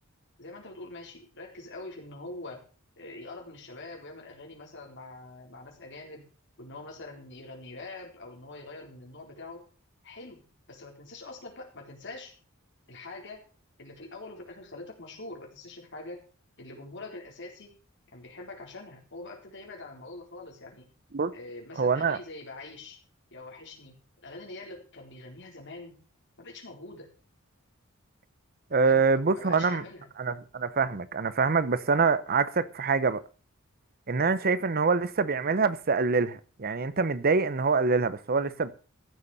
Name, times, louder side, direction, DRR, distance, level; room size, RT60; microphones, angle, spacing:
voice 1, 0.4-2.6 3.0-6.3 6.6-9.7 10.0-10.4 10.7-12.3 12.9-13.4 13.8-16.2 16.6-17.7 18.1-20.9 21.3-23.0 23.3-26.0 26.4-27.1 28.7-30.1, left 2 dB, 60° left, 4.3 m, -44 dB
voice 2, 21.8-22.2 28.7-29.8 30.2-33.2 34.1-38.7, right 4 dB, 45° right, 0.8 m, -25 dB
15.0 x 7.0 x 6.7 m
head